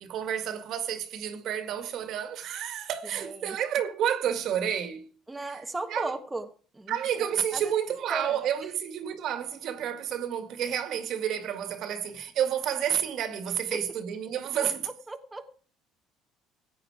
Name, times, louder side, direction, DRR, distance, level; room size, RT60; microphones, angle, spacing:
voice 1, 0.0-5.1 5.5-5.6 5.9-6.1 6.9-14.9, right 9 dB, 60° right, 1.9 m, -30 dB
voice 2, 3.2-3.6 5.3-6.5 6.7-7.7 8.1-8.4 13.7-13.8 14.6-14.7 15.1-15.5, right 2 dB, 10° right, 1.2 m, -36 dB
15.0 x 8.7 x 4.8 m
cardioid pair, 115°, 0 cm